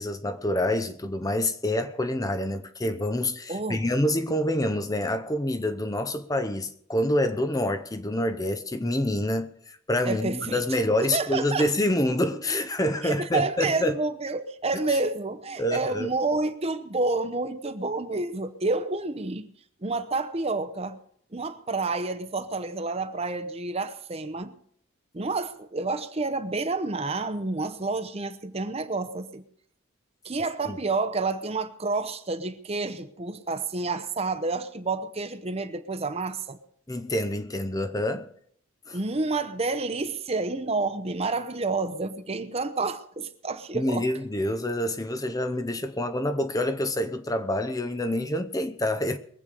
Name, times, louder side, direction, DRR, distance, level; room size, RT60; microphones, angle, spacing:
voice 1, 0.0-14.0 14.9-15.0 15.6-16.1 30.7-30.8 36.9-38.3 38.9-39.0 43.7-49.2, left 1 dB, 15° left, 0.7 m, -27 dB
voice 2, 3.5-3.8 10.1-10.6 11.0-11.7 13.0-19.5 19.8-21.0 21.3-24.6 25.1-29.4 30.2-36.6 38.9-44.1, right 3 dB, 30° right, 0.8 m, -29 dB
22.0 x 8.1 x 5.3 m
head